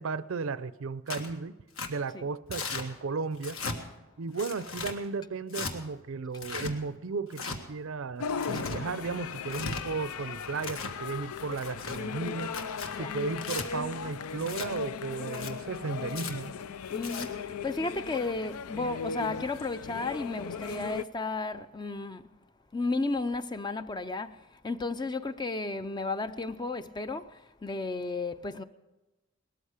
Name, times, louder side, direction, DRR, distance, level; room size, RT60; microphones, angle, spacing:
voice 1, 0.0-1.6 1.9-3.6 4.2-12.6 13.0-16.5, right 4 dB, 65° right, 0.5 m, -35 dB
Tearing, 1.1-1.3 1.8-1.9 2.5-2.9 3.4-3.8 4.4-5.0 5.5-5.7 6.3-6.7 7.3-7.6 8.3-8.8 9.4-9.8 10.4-11.0 11.5-12.0 12.5-12.9 13.4-13.7 14.4-14.7 15.2-15.5 16.1-16.3 16.9-17.3, left 4 dB, 70° left, 1.6 m, -37 dB
sound 1, 8.2-21.0, left 6 dB, 85° left, 0.5 m, -37 dB
voice 2, 16.9-22.3 22.7-28.6, left 3 dB, 20° left, 0.4 m, -33 dB
19.0 x 13.5 x 4.9 m
head